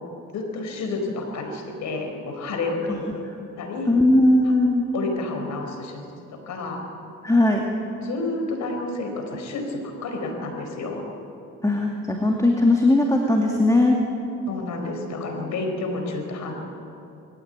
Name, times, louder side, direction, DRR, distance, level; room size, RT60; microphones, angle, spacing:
voice 1, 0.3-3.1 3.6-4.0 4.9-6.8 8.0-11.0 14.5-16.5, left 3 dB, 70° left, 4 dB, 4.8 m, -30 dB
voice 2, 3.9-4.9 7.2-7.6 11.6-14.0, left 2 dB, 10° left, 0 dB, 2.4 m, -18 dB
22.0 x 16.0 x 9.2 m, 2.7 s
cardioid pair, 90°, 30 cm